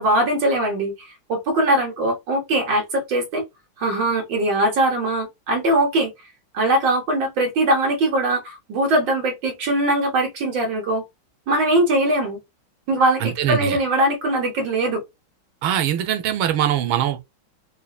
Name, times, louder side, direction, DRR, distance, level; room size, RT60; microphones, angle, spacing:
voice 1, 0.0-3.4 3.8-6.1 6.5-11.0 11.5-12.4 12.9-15.0, right 1 dB, 65° right, 1.9 m, -21 dB
voice 2, 13.2-13.8 15.6-17.3, right 10 dB, 85° right, 1.5 m, -22 dB
5.4 x 2.2 x 2.3 m
omnidirectional pair, 2.2 m